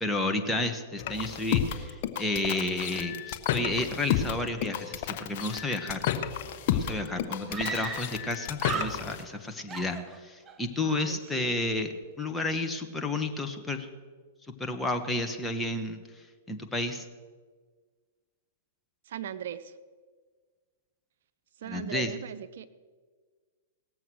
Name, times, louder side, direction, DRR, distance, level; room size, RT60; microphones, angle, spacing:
voice 1, 0.0-6.1 6.7-13.9 14.6-16.0 16.5-17.0 21.6-22.1, left 2 dB, 10° left, 4 dB, 1.4 m, -31 dB
sound 1, 1.0-9.2, left 10 dB, 55° left, 1.1 m, -31 dB
Screaming, 6.4-6.5 6.7-6.8 7.5-8.3 8.6-9.4 9.7-10.6, right 4 dB, 20° right, 1.0 m, -36 dB
voice 2, 10.8-11.5 19.1-19.7 21.6-22.7, right 9 dB, 70° right, 13 dB, 0.6 m, -39 dB
18.5 x 7.7 x 6.2 m, 1.5 s
hypercardioid pair, 115°, 0 cm